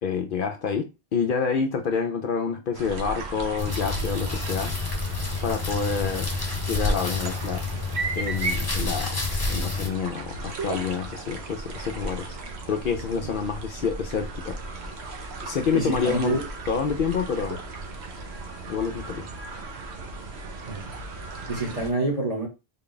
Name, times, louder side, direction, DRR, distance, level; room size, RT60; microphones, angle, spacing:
voice 1, 0.0-4.7 5.4-6.3 6.7-7.6 8.2-9.1 9.5-12.4 12.7-14.6 15.4-16.4 16.7-17.6 18.7-19.3, left 6 dB, 60° left, 0.6 m, -28 dB
sound 1, 2.7-21.9, right 3 dB, 75° right, 1.0 m, -36 dB
sound 2, 3.6-9.9, left 3 dB, 20° left, 1.0 m, -29 dB
voice 2, 15.7-16.4 20.7-20.9 21.5-22.5, right 2 dB, 35° right, 0.9 m, -27 dB
3.7 x 2.2 x 3.8 m
omnidirectional pair, 1.1 m